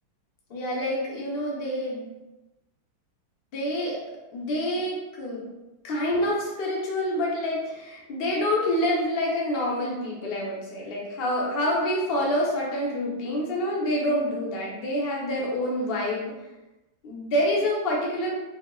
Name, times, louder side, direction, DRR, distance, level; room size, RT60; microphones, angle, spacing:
voice 1, 0.5-2.1 3.5-4.0 4.3-5.4 5.8-16.4 17.0-18.4, left 1 dB, 50° left, -3 dB, 0.7 m, -27 dB
4.5 x 2.8 x 2.3 m, 1.0 s
omnidirectional pair, 2.0 m